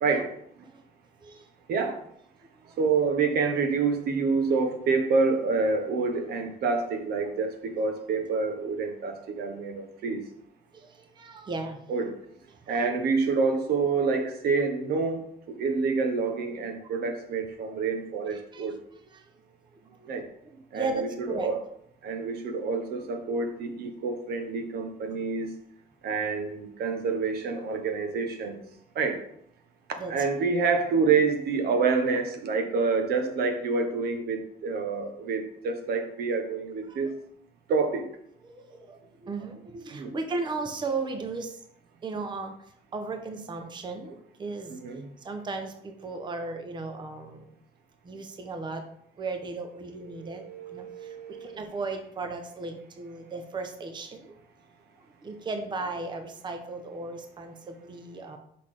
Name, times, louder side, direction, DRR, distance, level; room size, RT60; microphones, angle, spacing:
voice 1, 2.8-10.2 11.9-12.1 12.7-15.2 15.5-18.8 20.1-20.3 20.7-21.6 22.0-25.5 26.0-28.6 28.9-29.2 30.1-37.1 37.7-38.0 39.9-40.1 44.8-45.0 50.1-51.6, right 4 dB, 65° right, 6 dB, 1.0 m, -27 dB
voice 2, 10.7-11.9 12.5-12.9 13.3-13.4 16.8-16.9 17.7-17.8 18.3-21.5 30.0-30.1 36.9-37.1 38.4-41.6 42.0-44.8 45.2-47.5 48.0-48.9 49.2-54.4 55.0-58.4, right 3 dB, 25° right, 6 dB, 0.8 m, -36 dB
5.8 x 4.0 x 4.9 m, 0.68 s
cardioid pair, 110°, 17 cm